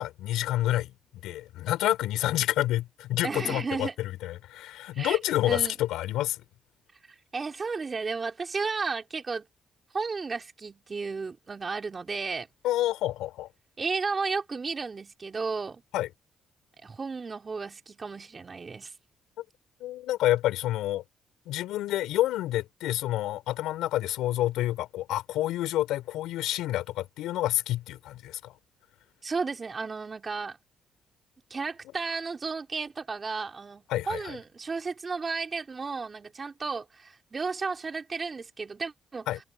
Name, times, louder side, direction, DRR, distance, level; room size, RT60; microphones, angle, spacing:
voice 1, 0.0-6.4 12.6-13.5 15.9-16.1 19.8-21.0 21.4-28.5 33.9-34.4 39.3-39.4, left 14 dB, 85° left, 4.7 m, -28 dB
voice 2, 3.2-3.9 4.9-5.2 5.4-5.7 7.3-9.5 9.9-12.5 13.8-15.8 16.8-18.9 29.2-30.6 31.5-39.3, right 4 dB, 35° right, 3.6 m, -33 dB
supercardioid pair, 70°, 0 cm